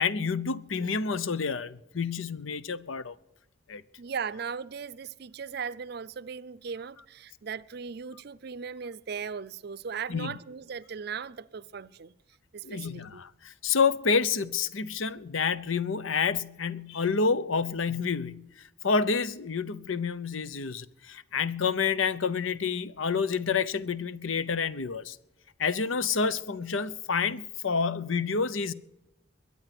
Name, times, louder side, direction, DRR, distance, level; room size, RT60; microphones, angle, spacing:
voice 1, 0.0-3.2 3.7-3.8 10.1-10.4 12.6-18.5 18.8-25.2 25.6-28.7, left 5 dB, 85° left, 0.8 m, -28 dB
voice 2, 4.0-12.1 12.5-13.2, right 6 dB, 55° right, 0.5 m, -38 dB
22.5 x 9.4 x 6.0 m
head